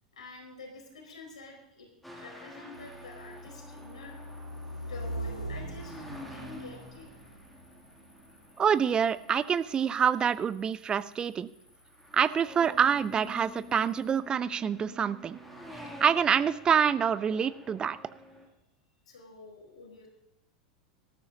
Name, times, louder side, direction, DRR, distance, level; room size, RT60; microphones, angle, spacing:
voice 1, 0.1-1.9 2.2-4.5 4.9-7.1 19.1-20.1, left 3 dB, 70° left, 1 dB, 4.3 m, -48 dB
sound 1, 2.0-10.3 11.0-11.3 11.7-18.5, equal, 5° left, 2.6 m, -49 dB
sound 2, 2.7-14.2, right 1 dB, 85° left, 2.1 m, -44 dB
voice 2, 8.6-11.5 12.1-15.4 16.0-18.0, right 7 dB, 25° right, 16 dB, 0.6 m, -26 dB
19.5 x 12.5 x 2.8 m, 0.87 s
figure-of-eight pair, 85°, 4 cm